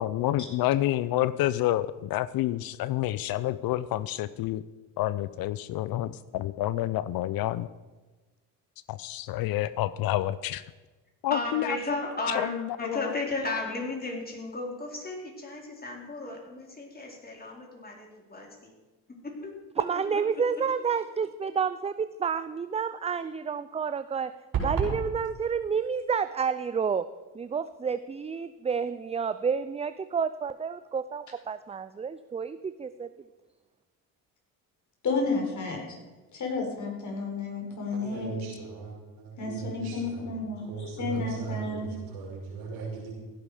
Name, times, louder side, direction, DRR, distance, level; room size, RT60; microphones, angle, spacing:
voice 1, 0.0-4.6 5.0-7.7 8.9-10.6 11.2-11.8 12.3-13.1, left 14 dB, 65° left, 17 dB, 0.6 m, -28 dB
voice 2, 11.3-12.5 12.8-18.7 19.2-19.5, left 2 dB, 25° left, 0 dB, 4.3 m, -34 dB
voice 3, 19.8-24.3 24.6-27.1 27.3-33.1, right 6 dB, 15° right, 13 dB, 0.4 m, -30 dB
sound 1, 24.5-25.0, right 5 dB, 60° right, 5.0 m, -27 dB
voice 4, 35.0-35.8 36.3-38.3 39.4-41.9, left 3 dB, 50° left, 1 dB, 4.7 m, -31 dB
voice 5, 37.9-40.3 40.6-43.1, right 5 dB, 90° right, -2 dB, 5.6 m, -38 dB
16.5 x 10.5 x 5.0 m, 1.2 s
supercardioid pair, 85°, 38 cm